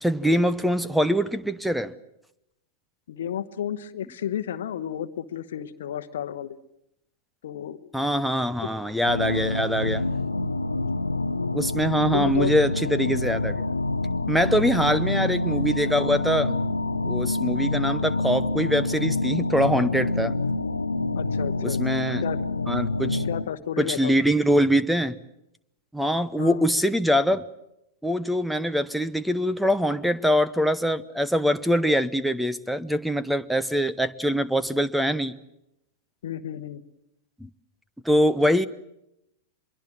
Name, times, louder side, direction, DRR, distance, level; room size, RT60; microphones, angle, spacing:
voice 1, 0.0-1.9 7.9-10.0 11.5-13.6 14.3-16.5 17.0-20.3 21.6-22.2 22.7-23.2 23.8-25.2 25.9-27.4 28.0-35.4 37.4-37.5 38.0-38.7, equal, ahead, 14 dB, 0.9 m, -23 dB
voice 2, 3.1-6.6 7.4-7.9 8.6-8.7 12.1-12.6 14.9-15.0 21.1-21.8 22.2-22.4 23.3-24.3 26.4-26.6 36.2-36.8, left 10 dB, 65° left, 11 dB, 1.1 m, -32 dB
sound 1, 9.1-23.5, left 2 dB, 90° left, 0.8 m, -27 dB
25.0 x 22.5 x 7.6 m, 0.85 s
figure-of-eight pair, 100°, 0 cm